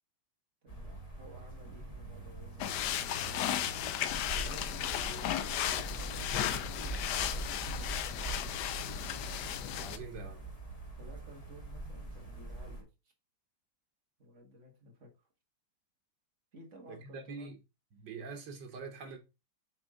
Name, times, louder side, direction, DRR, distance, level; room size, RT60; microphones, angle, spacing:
voice 1, 0.6-7.9 10.2-10.4 11.0-12.9 14.2-15.1 16.5-17.5, right 1 dB, 45° right, 1.9 m, -54 dB
sound 1, 0.7-12.8, right 2 dB, 20° left, 1.8 m, -43 dB
sound 2, 2.6-10.0, left 11 dB, 75° left, 1.2 m, -35 dB
voice 2, 9.7-10.5 16.9-17.6 17.9-19.2, right 4 dB, 90° right, 2.0 m, -44 dB
7.8 x 3.7 x 3.7 m
omnidirectional pair, 1.9 m